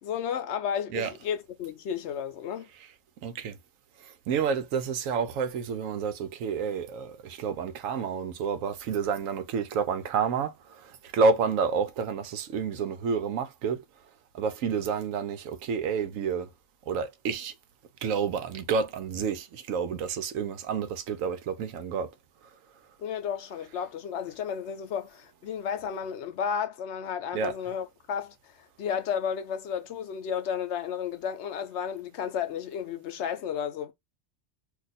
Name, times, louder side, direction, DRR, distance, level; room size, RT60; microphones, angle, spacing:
voice 1, 0.0-2.7 23.0-33.9, left 8 dB, 65° left, 0.8 m, -33 dB
voice 2, 3.2-3.6 4.0-13.8 14.3-16.5 16.9-17.5 18.0-22.1 27.3-27.5, right 5 dB, 90° right, 1.0 m, -29 dB
2.6 x 2.4 x 4.0 m
omnidirectional pair, 1.3 m